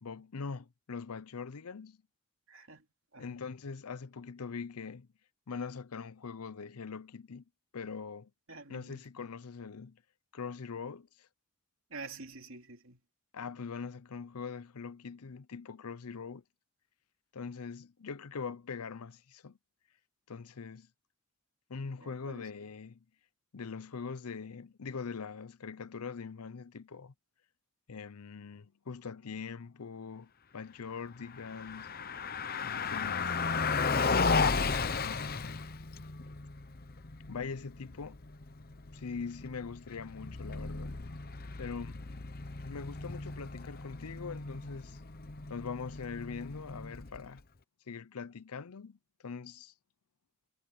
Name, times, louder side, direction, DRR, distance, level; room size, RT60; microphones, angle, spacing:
voice 1, 0.0-2.0 3.2-5.1 5.5-7.4 7.7-8.3 8.7-10.0 10.3-11.3 13.3-16.4 17.3-19.6 20.3-20.9 21.7-23.0 23.5-27.1 27.9-31.9 32.6-33.9 35.0-35.7 37.3-38.2 38.9-40.9 41.6-42.0 42.6-45.0 45.5-47.4 47.9-49.7, left 5 dB, 90° left, 0.6 m, -42 dB
voice 2, 2.5-3.4 8.5-9.1 11.9-13.0 22.0-22.5, right 4 dB, 65° right, 3.0 m, -48 dB
Car passing by, 31.3-47.4, left 4 dB, 45° left, 0.9 m, -35 dB
head